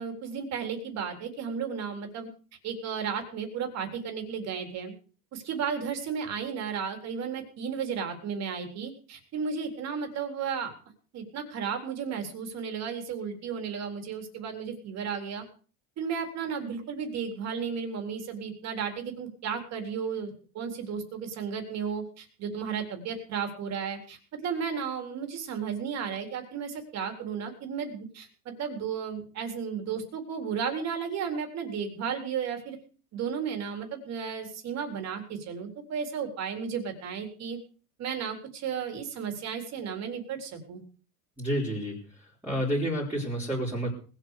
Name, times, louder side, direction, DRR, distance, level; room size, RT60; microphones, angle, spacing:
voice 1, 0.0-2.3 2.6-4.9 5.3-10.7 11.1-15.4 16.0-32.8 33.1-37.6 38.0-40.8, right 6 dB, 35° right, 5 dB, 3.9 m, -34 dB
voice 2, 41.4-43.9, equal, 5° right, -5 dB, 4.4 m, -30 dB
20.0 x 8.4 x 6.6 m, 0.41 s
supercardioid pair, 155°, 46 cm